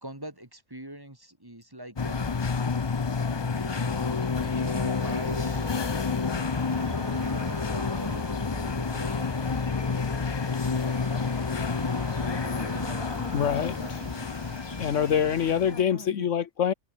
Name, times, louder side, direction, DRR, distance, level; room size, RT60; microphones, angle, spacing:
voice 1, 0.0-2.6 3.2-5.9 6.6-9.5 15.6-16.3, right 1 dB, 15° right, 2.4 m, -44 dB
sound 1, 2.0-15.8, left 5 dB, 35° left, 0.4 m, -29 dB
sound 2, 3.5-15.5, right 3 dB, 80° right, 4.0 m, -42 dB
sound 3, 12.2-13.9, right 1 dB, 35° right, 4.9 m, -60 dB
voice 2, 13.3-14.0 14.8-16.7, left 8 dB, 70° left, 1.2 m, -26 dB
omnidirectional pair, 1.4 m